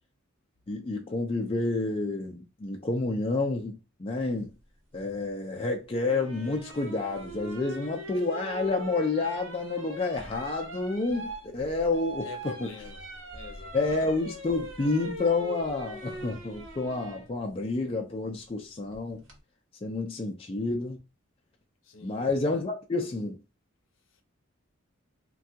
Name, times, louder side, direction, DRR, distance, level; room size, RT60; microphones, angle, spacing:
voice 1, 0.7-4.5 4.9-12.3 12.6-12.7 13.7-19.2 19.8-21.0 22.0-23.4, left 3 dB, 25° left, 0.4 m, -29 dB
sound 1, 6.1-17.3 18.9-19.3, right 2 dB, 65° right, 1.0 m, -41 dB
voice 2, 12.2-13.0 13.3-13.7 21.9-22.3, left 6 dB, 70° left, 0.6 m, -44 dB
3.3 x 2.3 x 2.7 m
head